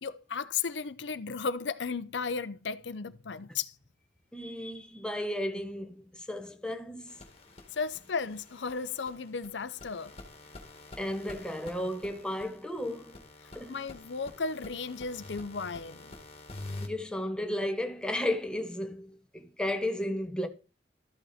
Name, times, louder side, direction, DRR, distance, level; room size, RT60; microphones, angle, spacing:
voice 1, 0.0-3.8 7.7-10.1 13.4-16.1, left 5 dB, 75° left, 0.7 m, -35 dB
voice 2, 4.3-7.2 11.0-13.3 13.5-13.8 16.8-20.5, left 1 dB, 5° left, 1.1 m, -34 dB
sound 1, 7.1-16.9, left 2 dB, 35° left, 2.1 m, -47 dB
13.0 x 8.3 x 4.3 m
head